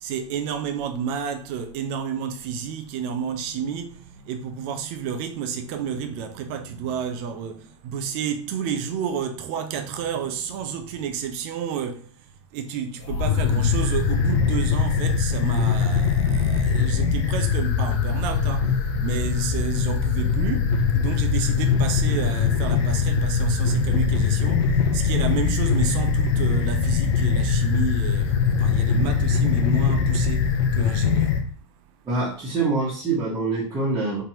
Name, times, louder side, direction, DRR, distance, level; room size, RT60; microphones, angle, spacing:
voice 1, 0.0-31.6, right 7 dB, 40° right, 0.6 m, -31 dB
sound 1, 13.0-31.4, left 6 dB, 45° left, 0.8 m, -22 dB
voice 2, 32.1-34.2, right 3 dB, 20° right, 1.4 m, -25 dB
4.1 x 3.3 x 2.9 m
figure-of-eight pair, 95°, 17 cm